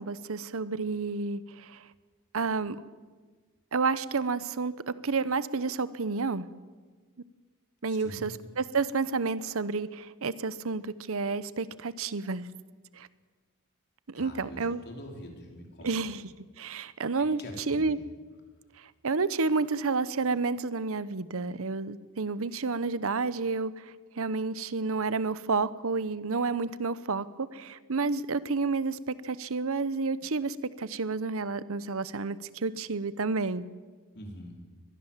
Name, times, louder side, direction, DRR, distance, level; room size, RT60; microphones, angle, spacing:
voice 1, 0.0-1.4 2.3-2.8 3.7-6.5 7.8-8.3 8.6-12.5 13.0-13.1 14.1-14.8 15.8-16.2 16.6-17.4 17.7-18.0 19.0-23.7 24.2-29.0 29.2-33.6, right 4 dB, 70° right, 16 dB, 0.9 m, -30 dB
voice 2, 7.9-8.3 14.1-15.9 17.2-18.0 34.1-34.6, equal, 50° left, 1 dB, 4.8 m, -45 dB
23.0 x 18.5 x 7.5 m, 1.4 s
head